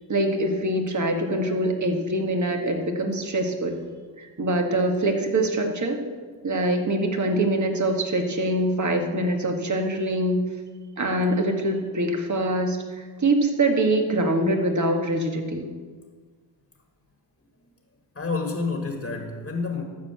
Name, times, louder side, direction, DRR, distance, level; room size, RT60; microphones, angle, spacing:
voice 1, 0.1-3.8 4.2-6.0 6.4-10.4 11.0-15.7, right 1 dB, 40° right, 3 dB, 1.9 m, -24 dB
voice 2, 18.2-19.8, left 4 dB, 30° left, 3 dB, 1.8 m, -28 dB
12.5 x 4.8 x 8.3 m, 1.5 s
cardioid pair, 65°, 45 cm